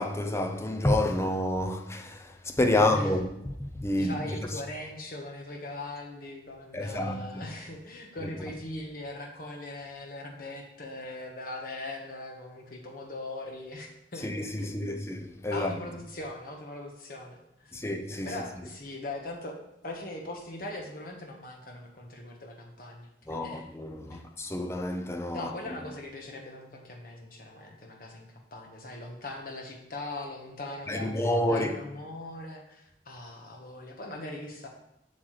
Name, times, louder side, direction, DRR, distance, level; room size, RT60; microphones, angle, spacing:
voice 1, 0.0-3.4 3.7-4.4 6.7-7.5 8.2-8.3 14.2-15.7 17.7-18.3 23.3-25.5 30.9-31.8, left 1 dB, 15° left, 0.5 m, -29 dB
voice 2, 2.7-3.2 4.0-15.1 15.5-17.7 18.2-19.6 19.8-23.6 24.1-24.3 25.3-34.7, left 2 dB, 50° left, 1.2 m, -40 dB
7.5 x 6.3 x 3.2 m
head